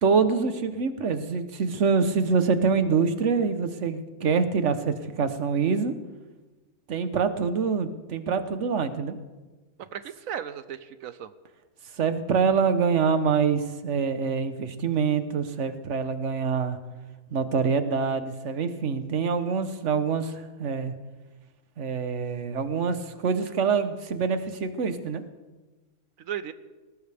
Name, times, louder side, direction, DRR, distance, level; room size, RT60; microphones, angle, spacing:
voice 1, 0.0-5.9 6.9-9.2 12.0-16.8 17.3-20.9 21.8-25.2, right 5 dB, 55° right, 10 dB, 1.3 m, -25 dB
voice 2, 9.8-11.3 26.2-26.5, right 9 dB, 70° right, 13 dB, 1.0 m, -36 dB
19.5 x 19.5 x 3.5 m, 1.2 s
omnidirectional pair, 1.5 m